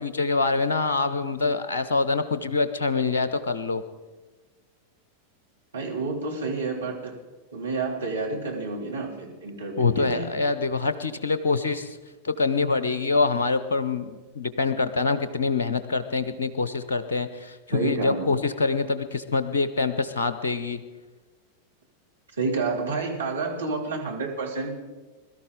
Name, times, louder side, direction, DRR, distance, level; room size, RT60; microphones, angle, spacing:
voice 1, 0.0-3.8 9.8-11.9 12.2-20.8, left 4 dB, 65° left, 12 dB, 0.7 m, -25 dB
voice 2, 5.7-7.2 7.5-10.3 17.7-18.3 22.4-24.8, right 3 dB, 70° right, 0 dB, 2.8 m, -29 dB
21.5 x 13.0 x 3.8 m, 1.3 s
figure-of-eight pair, 90°, 0 cm